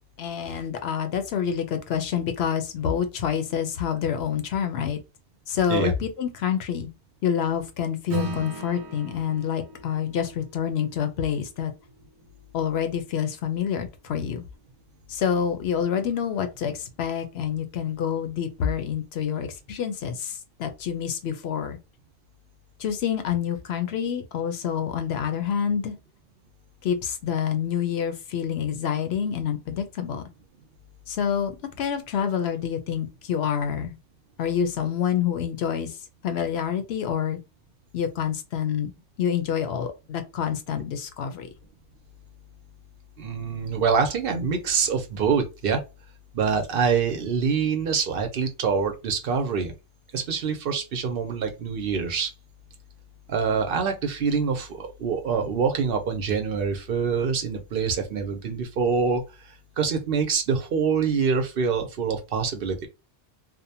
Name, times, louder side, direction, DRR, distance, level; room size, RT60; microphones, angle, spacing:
voice 1, 0.2-5.0 5.5-6.9 7.2-11.7 12.5-14.4 15.1-21.8 22.8-25.9 26.8-30.2 31.1-33.9 34.4-35.9 36.2-37.4 37.9-38.9 39.2-41.5, left 8 dB, 70° left, 0.8 m, -27 dB
Acoustic guitar / Strum, 8.1-12.9, right 1 dB, 85° right, 1.0 m, -37 dB
voice 2, 43.2-45.8 46.3-49.7 50.1-52.3 53.3-59.2 59.8-62.9, right 5 dB, 60° right, 0.7 m, -25 dB
2.6 x 2.1 x 2.7 m
omnidirectional pair, 1.1 m